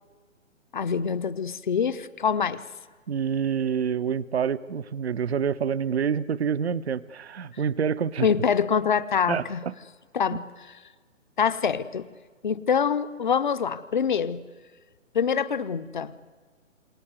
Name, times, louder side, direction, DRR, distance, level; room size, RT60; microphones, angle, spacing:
voice 1, 0.7-2.6 8.2-9.6 10.1-10.8 11.4-12.1 12.4-14.4 15.1-16.2, left 7 dB, 40° left, 14 dB, 0.8 m, -25 dB
voice 2, 3.1-8.3 9.3-9.7, right 7 dB, 55° right, 16 dB, 0.7 m, -27 dB
27.5 x 22.0 x 8.0 m, 1.5 s
figure-of-eight pair, 135°, 38 cm